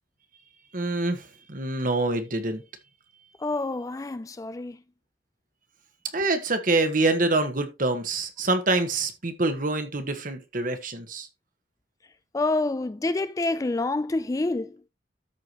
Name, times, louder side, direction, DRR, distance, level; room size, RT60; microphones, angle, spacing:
voice 1, 0.7-2.6 6.1-11.3, right 2 dB, 45° right, 1.5 m, -26 dB
voice 2, 3.4-4.8 12.3-14.8, left 2 dB, 20° left, 0.3 m, -27 dB
13.5 x 4.7 x 3.0 m
head